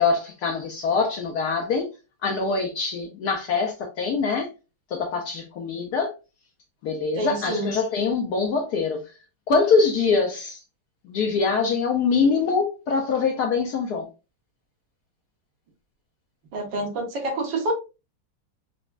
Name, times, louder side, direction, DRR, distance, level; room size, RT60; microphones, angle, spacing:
voice 1, 0.0-1.9 2.2-4.5 4.9-6.1 6.8-9.1 9.5-10.6 11.0-14.1, left 4 dB, 70° left, 0.9 m, -24 dB
voice 2, 7.2-7.7 16.5-17.7, right 2 dB, 65° right, 1.8 m, -27 dB
5.9 x 2.1 x 2.4 m
omnidirectional pair, 2.2 m